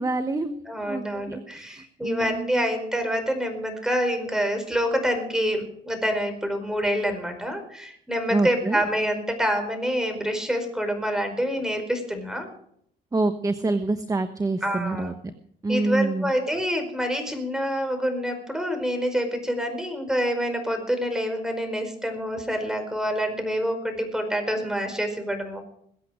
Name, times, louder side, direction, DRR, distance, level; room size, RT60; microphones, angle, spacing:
voice 1, 0.0-2.7 8.3-8.8 13.1-15.3 15.6-16.3, right 2 dB, 20° right, 9 dB, 1.2 m, -27 dB
voice 2, 0.6-12.5 14.6-15.1 15.7-25.6, equal, 5° right, 5 dB, 4.9 m, -27 dB
22.0 x 8.5 x 5.1 m, 0.68 s
cardioid pair, 85°, 18 cm